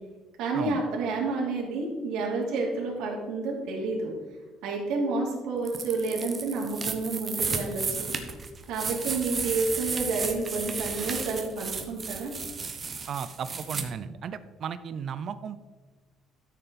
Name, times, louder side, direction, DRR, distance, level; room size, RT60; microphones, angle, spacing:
voice 1, 0.4-4.1 4.6-8.1 8.7-12.3, right 3 dB, 70° right, -3 dB, 2.7 m, -30 dB
sound 1, 5.6-13.8, right 5 dB, 25° right, 0.8 m, -33 dB
voice 2, 13.1-15.6, right 7 dB, 40° right, 12 dB, 0.4 m, -35 dB
12.5 x 6.7 x 4.0 m, 1.3 s
cardioid pair, 170°, 0 cm